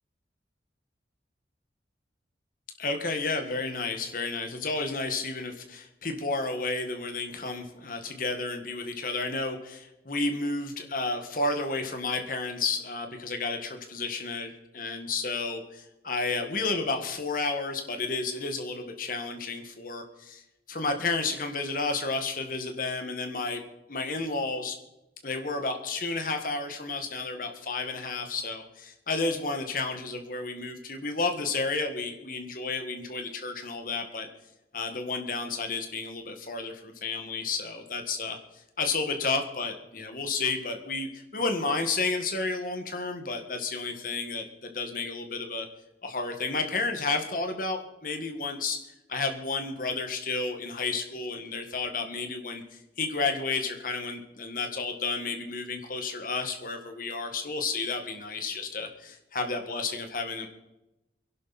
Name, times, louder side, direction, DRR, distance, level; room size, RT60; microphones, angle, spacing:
voice 1, 2.8-20.4 20.7-23.6 23.9-24.8 25.2-34.3 34.7-45.7 46.0-52.6 53.0-60.5, left 3 dB, 50° left, 6 dB, 1.8 m, -31 dB
23.5 x 11.5 x 4.3 m, 0.96 s
head